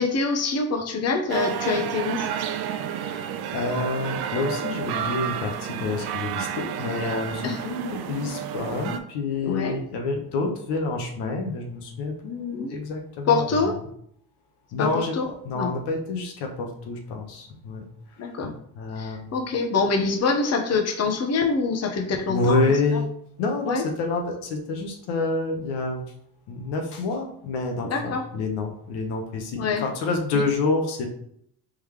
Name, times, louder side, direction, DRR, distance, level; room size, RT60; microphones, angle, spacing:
voice 1, 0.0-2.3 7.4-7.6 9.4-9.8 12.5-12.7 13.3-13.7 14.8-14.9 15.1-15.3 15.5-15.7 18.2-18.5 19.0-22.7 23.6-23.8 27.8-28.2 29.6-29.8, left 4 dB, 40° left, 3 dB, 0.9 m, -25 dB
sound 1, 1.3-9.0, right 9 dB, 65° right, 0.6 m, -30 dB
voice 2, 3.5-13.7 14.7-17.8 18.4-19.3 22.3-23.1 23.4-26.0 26.5-31.1, left 3 dB, 75° left, 3 dB, 1.0 m, -28 dB
3.7 x 3.2 x 3.2 m, 0.70 s
supercardioid pair, 70°, 42 cm